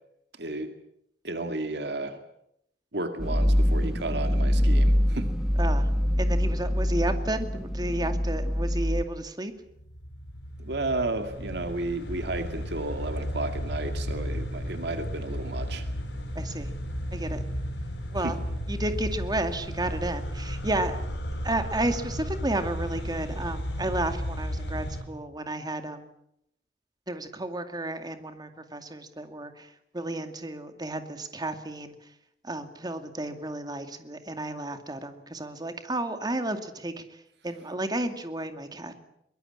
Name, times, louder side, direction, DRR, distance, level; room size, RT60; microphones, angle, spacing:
voice 1, 0.3-0.7 1.2-2.2 2.9-5.3 10.6-15.9 18.2-18.3, right 2 dB, 70° right, 7 dB, 2.2 m, -32 dB
sound 1, 3.2-9.0, equal, ahead, 1.6 m, -24 dB
voice 2, 5.6-5.9 6.2-9.5 16.3-16.7 17.1-17.4 18.1-18.4 18.7-21.0 21.4-26.1 27.1-32.1 32.4-38.9, right 1 dB, 25° right, 8 dB, 2.3 m, -32 dB
sound 2, 9.8-25.0, equal, 75° left, 5.1 m, -34 dB
23.0 x 21.0 x 8.8 m, 0.77 s
head